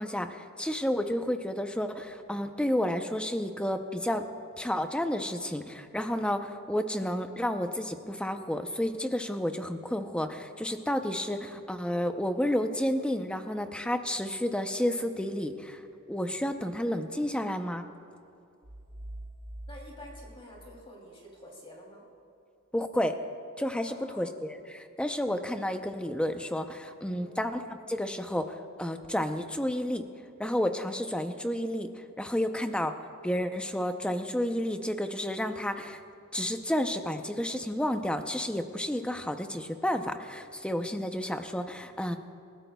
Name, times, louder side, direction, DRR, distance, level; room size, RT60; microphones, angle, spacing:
voice 1, 0.0-4.2 4.6-15.8 16.1-17.9 22.7-23.2 23.6-30.0 30.4-32.9 33.2-36.0 36.3-42.2, left 1 dB, 5° left, 7 dB, 0.6 m, -31 dB
sound 1, 18.6-21.3, right 1 dB, 75° right, 2.1 m, -45 dB
voice 2, 19.7-22.0 23.9-24.3 27.1-27.4, left 1 dB, 25° left, -2 dB, 2.8 m, -49 dB
28.5 x 13.5 x 2.3 m, 2.6 s
head